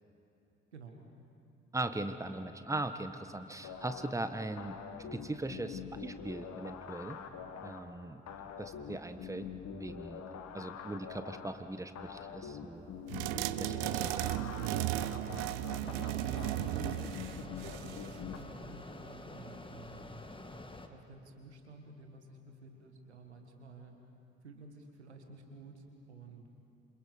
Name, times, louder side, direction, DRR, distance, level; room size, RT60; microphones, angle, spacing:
voice 1, 0.7-1.0 16.1-17.0 17.3-20.2 20.9-24.0 24.4-26.5, right 3 dB, 90° right, 4 dB, 1.7 m, -52 dB
voice 2, 1.7-4.8 5.1-7.2 7.6-8.2 8.6-10.2 10.5-12.8 13.6-14.5, right 2 dB, 10° right, 9 dB, 1.4 m, -39 dB
sound 1, 3.6-18.4, left 7 dB, 55° left, 1.8 m, -45 dB
sound 2, 13.1-18.1, right 15 dB, 70° right, 0.7 m, -35 dB
Mechanisms, 15.8-20.9, left 2 dB, 15° left, 1.8 m, -48 dB
27.5 x 26.5 x 5.2 m, 2.8 s
figure-of-eight pair, 45°, 33 cm